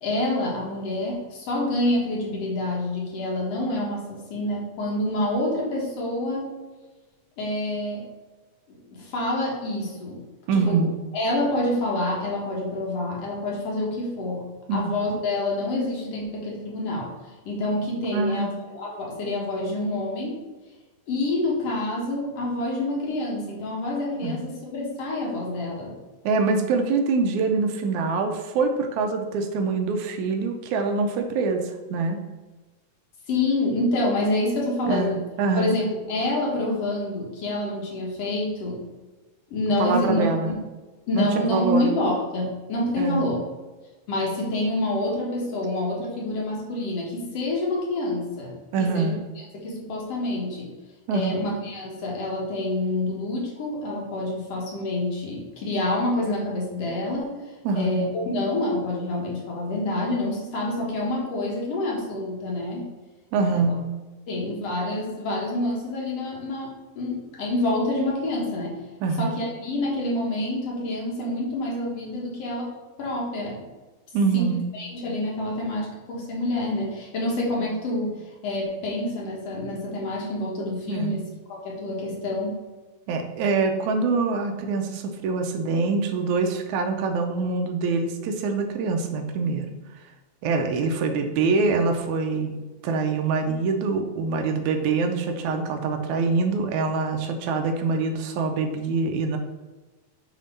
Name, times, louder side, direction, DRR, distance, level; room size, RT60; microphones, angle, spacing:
voice 1, 0.0-6.6 7.4-8.1 8.7-10.2 10.5-10.8 11.1-17.1 17.5-20.4 21.1-25.9 33.3-35.2 35.6-38.8 39.5-40.6 41.1-43.4 44.1-50.7 51.1-57.4 57.7-62.9 63.5-63.7 64.3-68.8 69.2-72.7 73.0-73.6 74.3-74.5 74.7-82.6, left 1 dB, 60° left, -3 dB, 2.3 m, -27 dB
voice 2, 10.5-10.9 14.7-14.8 18.0-18.5 24.2-24.4 26.2-32.2 34.9-35.8 39.8-40.5 41.1-41.9 43.0-43.2 48.7-49.2 51.1-51.4 57.7-58.0 63.3-63.9 69.0-69.3 74.1-74.7 80.9-81.2 83.1-89.7 90.4-99.4, right 4 dB, 80° right, 5 dB, 2.1 m, -24 dB
7.2 x 3.7 x 5.4 m, 1.2 s
omnidirectional pair, 3.5 m